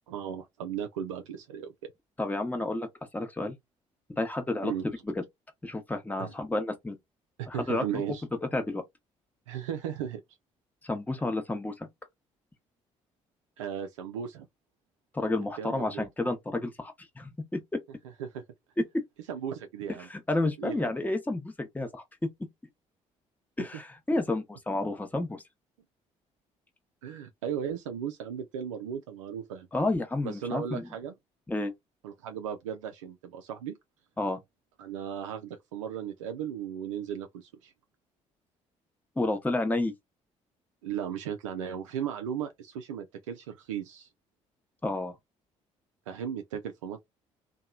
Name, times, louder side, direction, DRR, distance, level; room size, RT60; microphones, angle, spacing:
voice 1, 0.1-1.7 4.6-4.9 6.2-6.3 7.4-8.2 9.5-10.2 13.6-14.5 15.6-16.1 18.2-18.4 19.3-20.1 20.6-20.9 27.0-29.7 30.2-31.1 32.0-33.8 34.8-37.7 40.8-44.1 46.1-47.0, right 8 dB, 85° right, 0.4 m, -36 dB
voice 2, 2.2-2.9 3.1-3.5 4.2-4.7 5.0-5.2 5.6-7.0 7.5-8.0 8.4-8.8 10.8-11.9 15.1-17.8 18.9-19.0 20.1-22.0 23.6-25.4 29.7-30.9 31.5-31.7 34.2-34.4 39.2-39.9 44.8-45.1, left 2 dB, 10° left, 0.8 m, -30 dB
2.8 x 2.2 x 2.3 m
hypercardioid pair, 50°, 16 cm